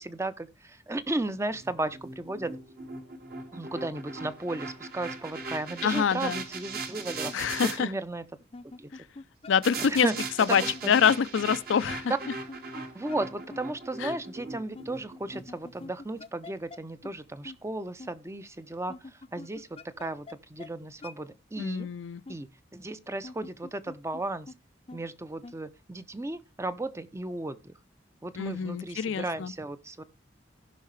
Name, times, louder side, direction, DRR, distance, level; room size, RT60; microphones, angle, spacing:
voice 1, 0.0-2.5 3.5-7.3 7.6-8.2 8.8-8.9 9.9-10.1 10.5-10.9 12.9-21.9 22.3-22.5 22.7-24.5 24.9-27.7 28.2-30.0, right 2 dB, 15° right, 0.5 m, -35 dB
sound 1, 1.6-7.8 9.6-15.9, right 4 dB, 50° right, 1.4 m, -39 dB
voice 2, 5.8-6.4 7.3-7.9 8.9-9.0 9.5-10.1 10.4-12.1 14.0-14.1 21.6-22.2 28.4-29.5, left 7 dB, 80° left, 0.4 m, -26 dB
sound 2, 7.2-7.3 8.4-9.5 9.8-9.9 10.2-10.3 10.7-10.8 11.9-12.8 13.1-13.2 13.5-13.6 14.0-14.2 14.7-14.9 15.3-16.8 17.0-17.1 17.4-17.6 18.0-18.1 18.9-20.3 20.6-20.7 21.0-21.1 21.6-21.7 22.3-22.4 23.1-24.2 24.5-24.6 24.9-25.0 25.4-25.5, left 3 dB, 30° left, 0.5 m, -44 dB
16.5 x 5.6 x 3.2 m
head